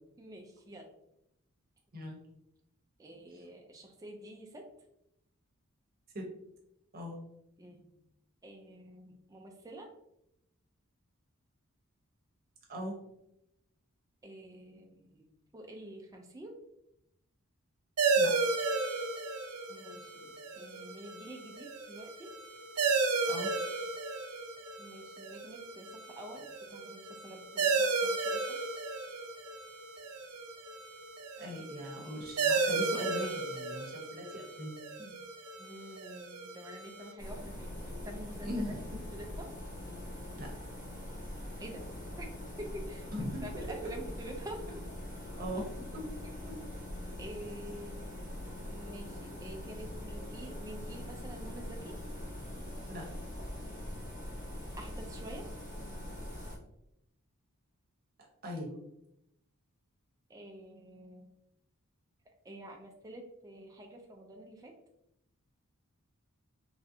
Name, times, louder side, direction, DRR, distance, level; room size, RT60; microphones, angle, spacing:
voice 1, 0.2-0.9 3.0-4.6 7.6-7.9 8.4-9.9 14.2-15.3 15.5-16.5 19.7-22.3 24.8-25.9 26.2-28.4 35.0-35.2 35.6-38.5 39.1-39.5 41.6-41.8 42.2-42.3 42.6-43.1 43.4-44.6 47.2-48.1 48.7-51.9 54.8-55.5 60.3-61.3 62.5-64.7, right 1 dB, 15° right, 2 dB, 0.3 m, -48 dB
sound 1, 18.0-37.1, right 4 dB, 85° right, 0.5 m, -34 dB
voice 2, 31.4-34.8 38.4-38.8 40.4-40.5 43.1-43.9 45.3-46.1 46.5-46.6 52.9-53.1 58.4-58.8, equal, 40° right, -1 dB, 0.8 m, -40 dB
sound 2, 37.2-56.6, left 1 dB, 35° left, 0.7 m, -43 dB
3.1 x 2.6 x 2.6 m, 0.80 s
head